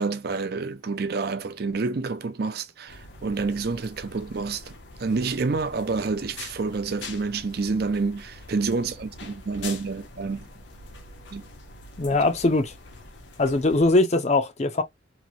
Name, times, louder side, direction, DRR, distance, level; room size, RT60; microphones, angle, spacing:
voice 1, 0.0-10.5 11.3-11.4 12.0-12.2, right 4 dB, 55° right, 0.5 m, -28 dB
sound 1, 2.9-14.0, left 3 dB, 70° left, 0.7 m, -44 dB
voice 2, 12.0-12.7 13.4-14.8, left 2 dB, 35° left, 0.5 m, -21 dB
3.0 x 2.6 x 2.5 m
head